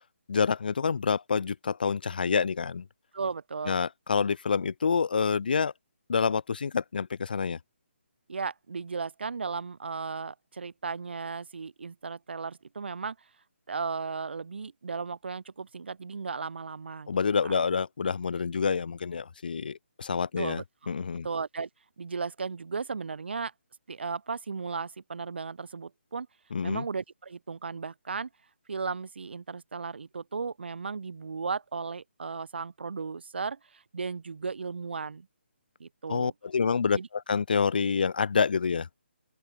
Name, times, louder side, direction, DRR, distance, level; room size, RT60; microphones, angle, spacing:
voice 1, 0.3-2.8 3.7-5.7 6.1-7.6 17.1-20.6 20.9-21.3 26.5-26.8 36.1-38.9, left 5 dB, 50° left, 1.4 m, -27 dB
voice 2, 3.1-3.8 8.3-13.2 13.7-17.1 17.4-17.6 20.4-20.6 21.2-21.7 22.0-23.5 23.9-26.3 26.6-28.3 28.7-35.3 35.8-36.3 36.9-37.1, right 5 dB, 60° right, 1.3 m, -35 dB
open air
hypercardioid pair, 175°, 7 cm